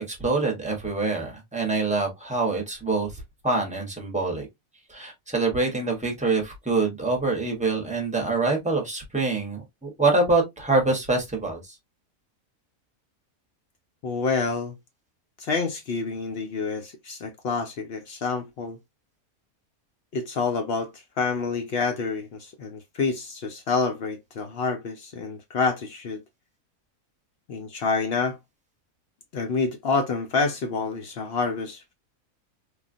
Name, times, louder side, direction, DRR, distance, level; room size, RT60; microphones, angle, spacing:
voice 1, 0.0-3.1 3.4-4.5 4.9-11.7, right 3 dB, 5° right, 0.7 m, -25 dB
voice 2, 14.0-14.8 15.4-18.8 20.1-26.2 27.5-28.4 29.3-31.9, left 4 dB, 65° left, 0.6 m, -28 dB
3.3 x 2.3 x 2.5 m
omnidirectional pair, 1.5 m